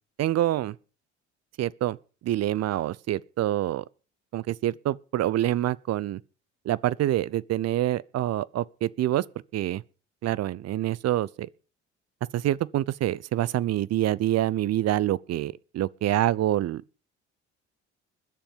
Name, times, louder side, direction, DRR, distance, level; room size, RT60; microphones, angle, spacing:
voice 1, 0.2-0.7 1.6-2.0 2.2-3.8 4.3-6.2 6.7-9.2 9.5-9.8 10.2-11.5 12.3-16.8, right 13 dB, 45° right, 0.8 m, -26 dB
21.0 x 7.2 x 5.3 m
hypercardioid pair, 55°, 35 cm